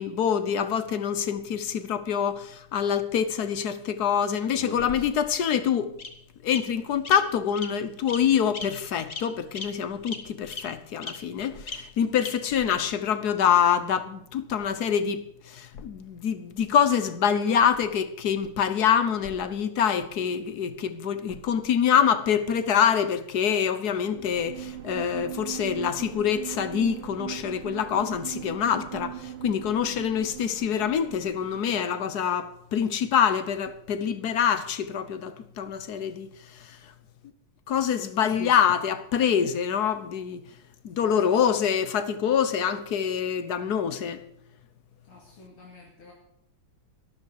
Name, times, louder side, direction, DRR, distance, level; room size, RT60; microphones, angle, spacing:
voice 1, 0.0-5.9 6.4-15.2 15.5-36.3 37.7-40.4 40.8-44.2, left 8 dB, 55° left, 1.3 m, -25 dB
Bird vocalization bird call bird song, 4.6-5.3 6.0-6.1 6.5-6.6 7.0-7.1 7.5-7.7 8.1-8.2 8.5-8.6 9.1-9.2 9.5-9.6 10.1-10.2 10.5-10.6 11.0-11.1 11.7-11.8 12.2-12.3 12.7-12.8, left 4 dB, 35° left, 1.8 m, -35 dB
sound 1, 24.0-31.8, right 12 dB, 85° right, 1.8 m, -39 dB
voice 2, 45.1-46.1, left 3 dB, 75° left, 3.5 m, -52 dB
13.0 x 12.5 x 6.6 m
omnidirectional pair, 2.3 m